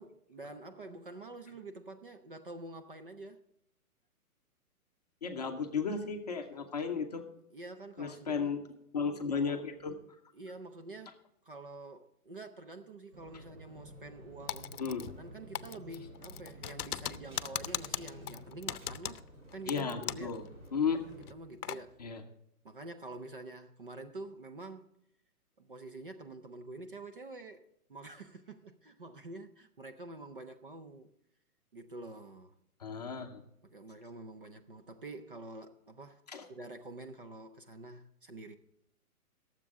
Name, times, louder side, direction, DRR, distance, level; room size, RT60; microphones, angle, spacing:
voice 1, 0.0-3.4 6.5-6.6 7.5-8.6 10.3-19.2 19.5-20.4 21.1-22.0 22.6-24.9 25.6-31.1 31.7-32.5 33.6-36.2 36.5-38.6, right 2 dB, 35° right, 0.6 m, -47 dB
voice 2, 5.2-7.3 8.0-8.6 8.9-10.0 14.8-15.1 19.7-20.4 20.7-21.1 22.0-22.2 32.8-33.4 36.3-36.4, left 5 dB, 25° left, 0.7 m, -34 dB
sound 1, 13.1-21.3, right 1 dB, 65° right, 4.3 m, -52 dB
Typing, 14.5-15.3 15.6-20.4 20.7-20.8 21.2-21.8, left 10 dB, 80° left, 0.7 m, -39 dB
22.0 x 7.5 x 3.6 m
hypercardioid pair, 170°, 45 cm